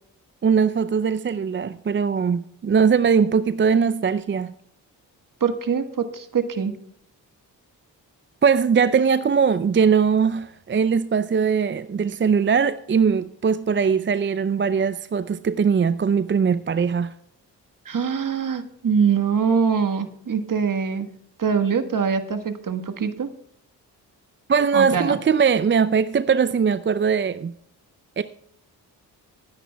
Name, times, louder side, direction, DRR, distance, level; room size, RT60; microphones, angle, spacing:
voice 1, 0.4-4.5 8.4-17.1 24.5-27.5 28.2-28.3, right 6 dB, 25° right, 0.5 m, -20 dB
voice 2, 5.4-6.7 17.8-21.1 21.4-23.3 24.7-25.2, right 6 dB, 45° right, 1.4 m, -23 dB
21.5 x 9.8 x 2.3 m
supercardioid pair, 45°, 46 cm